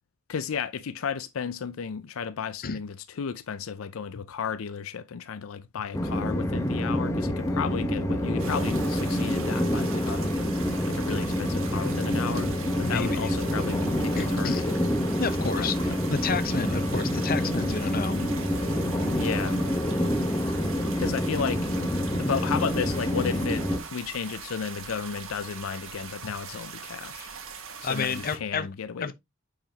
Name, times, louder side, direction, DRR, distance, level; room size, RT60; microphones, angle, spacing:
voice 1, 0.3-10.3 10.9-14.8 15.5-16.2 19.2-19.6 21.0-21.7 22.2-23.6 23.9-27.3 27.8-29.1, left 6 dB, 80° left, 0.5 m, -33 dB
Train, 5.9-23.8, equal, 15° left, 1.0 m, -27 dB
sound 1, 8.4-28.4, right 6 dB, 80° right, 1.4 m, -42 dB
voice 2, 12.8-13.3 14.2-14.6 15.2-18.2 27.8-28.7 29.0-29.1, left 5 dB, 45° left, 0.7 m, -30 dB
8.8 x 4.9 x 2.9 m
head